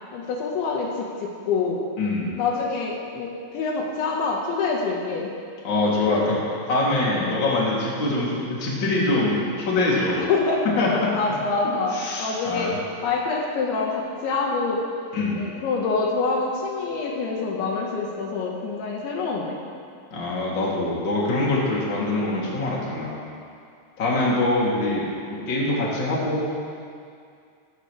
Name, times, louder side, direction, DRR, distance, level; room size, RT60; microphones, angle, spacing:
voice 1, 0.1-1.8 2.3-5.3 7.1-7.4 10.2-10.6 11.1-12.7 13.0-14.8 15.3-19.6, left 4 dB, 75° left, -1 dB, 3.7 m, -26 dB
voice 2, 2.0-2.3 5.6-6.4 6.7-10.2 10.8-11.3 11.9-12.8 15.1-15.4 20.1-23.2 24.0-26.6, left 2 dB, 30° left, -6 dB, 2.9 m, -24 dB
18.5 x 15.0 x 3.4 m, 2.3 s
omnidirectional pair, 5.4 m